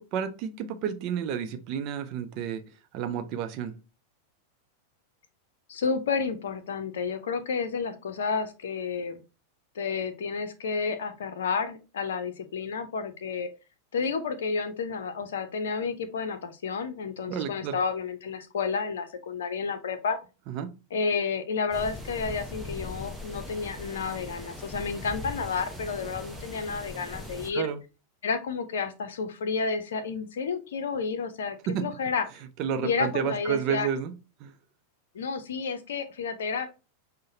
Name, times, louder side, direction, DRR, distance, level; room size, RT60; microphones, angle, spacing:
voice 1, 0.0-2.6 2.9-3.8 17.3-17.8 20.5-20.7 27.5-27.8 31.7-31.9 32.6-34.5, right 8 dB, 40° right, 8 dB, 0.5 m, -31 dB
voice 2, 5.7-9.2 9.8-13.5 13.9-20.2 20.9-27.7 28.2-32.3 32.8-33.9 35.1-36.8, left 5 dB, 60° left, 9 dB, 0.6 m, -31 dB
windy spring in the woods - rear, 21.7-27.5, left 2 dB, ahead, 0.8 m, -40 dB
6.2 x 2.1 x 2.6 m, 0.30 s
figure-of-eight pair, 90°, 0 cm